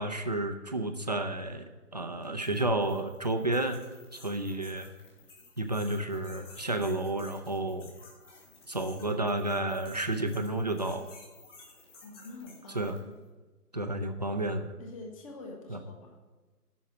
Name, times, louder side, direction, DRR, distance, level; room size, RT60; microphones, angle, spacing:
voice 1, 0.0-3.9 4.1-4.9 5.6-7.9 8.7-11.1 12.7-13.0 13.7-14.7 15.7-15.8, right 2 dB, 30° right, 6 dB, 0.5 m, -31 dB
sound 1, 2.2-13.2, left 3 dB, 50° left, 4.5 m, -54 dB
voice 2, 12.0-13.1 14.8-16.2, left 2 dB, 20° left, 2 dB, 1.4 m, -46 dB
11.0 x 6.3 x 8.3 m, 1.2 s
figure-of-eight pair, 155°, 47 cm